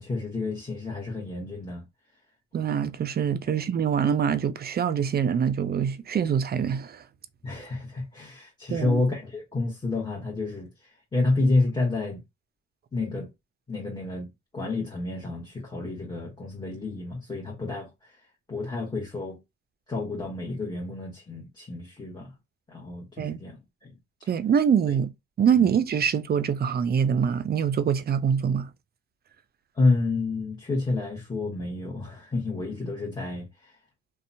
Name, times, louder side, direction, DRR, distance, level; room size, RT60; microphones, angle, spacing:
voice 1, 0.0-1.8 7.4-12.2 12.9-13.3 13.7-14.3 14.5-18.1 18.5-19.4 19.9-22.3 22.7-23.6 23.8-23.9 25.6-25.7 29.8-33.7, left 3 dB, 15° left, 0.9 m, -29 dB
voice 2, 2.5-7.0 8.7-9.0 23.2-23.4 24.3-25.1 25.4-28.7, right 7 dB, 35° right, 0.4 m, -24 dB
2.7 x 2.1 x 2.6 m
cardioid pair, 90°, 30 cm